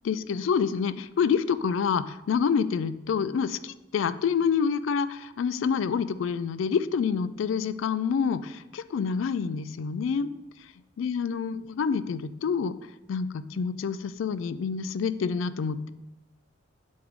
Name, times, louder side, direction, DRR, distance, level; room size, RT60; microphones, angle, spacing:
voice 1, 0.0-10.3 11.0-12.7 13.1-15.9, left 6 dB, 80° left, 15 dB, 0.3 m, -27 dB
7.8 x 3.6 x 5.0 m, 0.95 s
head